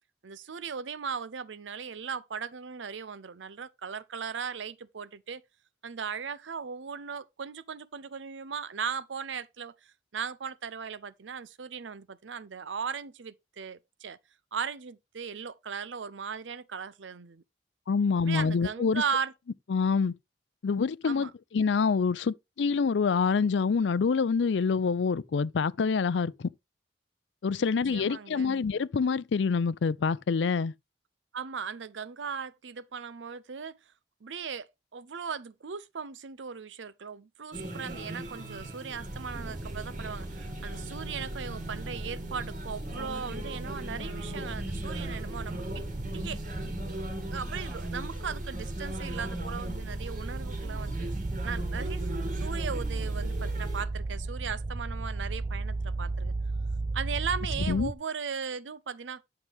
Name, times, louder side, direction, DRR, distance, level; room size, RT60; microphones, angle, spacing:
voice 1, 0.2-5.4 5.8-14.2 14.5-17.4 18.1-19.3 21.0-21.3 27.9-28.5 31.3-33.8 34.2-45.8 46.1-46.4 47.3-51.1 51.4-52.1 52.4-56.4 56.9-59.2, right 6 dB, 90° right, 0.6 m, -37 dB
voice 2, 17.9-19.0 19.7-20.1 20.6-26.5 27.4-30.7 57.7-57.9, left 5 dB, 75° left, 0.4 m, -26 dB
sound 1, 37.5-53.8, right 1 dB, 45° right, 2.3 m, -40 dB
sound 2, 39.0-57.9, right 2 dB, 25° right, 0.6 m, -35 dB
10.5 x 6.0 x 3.5 m
head